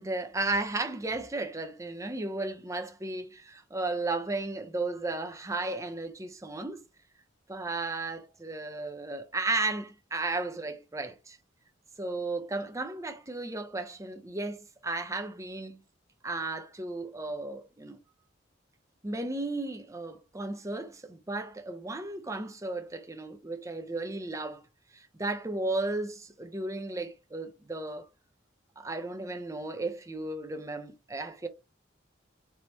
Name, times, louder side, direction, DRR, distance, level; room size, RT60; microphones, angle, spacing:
voice 1, 0.0-6.8 7.5-11.4 12.0-15.8 16.2-18.0 19.0-24.6 24.9-28.1 28.8-31.5, right 2 dB, 15° right, 0.6 m, -34 dB
4.0 x 3.5 x 3.0 m
head